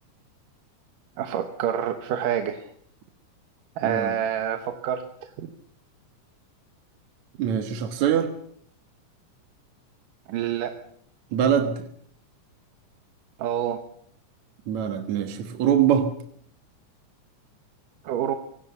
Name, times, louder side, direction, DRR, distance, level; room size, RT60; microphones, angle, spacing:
voice 1, 1.2-2.7 3.8-5.5 10.3-10.7 13.4-13.8 18.0-18.4, right 9 dB, 90° right, 7 dB, 2.9 m, -27 dB
voice 2, 3.8-4.1 7.4-8.3 11.3-11.8 14.7-16.1, right 9 dB, 65° right, 6 dB, 2.6 m, -23 dB
25.5 x 18.0 x 6.9 m, 0.65 s
omnidirectional pair, 3.7 m